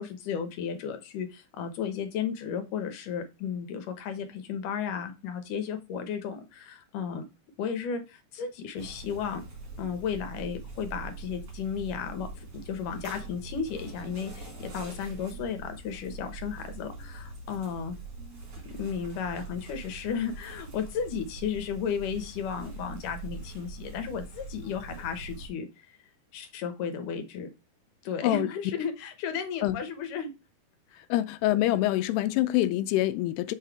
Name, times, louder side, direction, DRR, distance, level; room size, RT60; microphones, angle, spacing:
voice 1, 0.0-7.2 7.6-9.4 9.8-17.9 18.7-25.7 26.3-27.5 28.0-30.3 30.9-31.0, left 7 dB, 65° left, 2.3 m, -34 dB
sound 1, 8.8-25.5, right 3 dB, 35° right, 1.9 m, -43 dB
voice 2, 31.1-33.6, left 15 dB, 85° left, 2.6 m, -25 dB
5.8 x 5.6 x 4.7 m
omnidirectional pair, 4.7 m